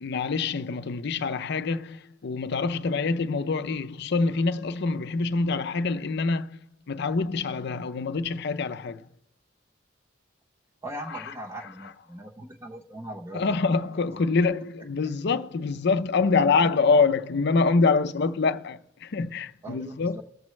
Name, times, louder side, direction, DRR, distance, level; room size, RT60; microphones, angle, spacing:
voice 1, 0.0-6.6 6.9-9.0 11.1-11.3 13.3-20.2, left 4 dB, 60° left, 0.6 m, -25 dB
voice 2, 10.8-14.3 19.6-20.2, right 1 dB, 20° right, 0.8 m, -40 dB
21.0 x 7.2 x 3.2 m
head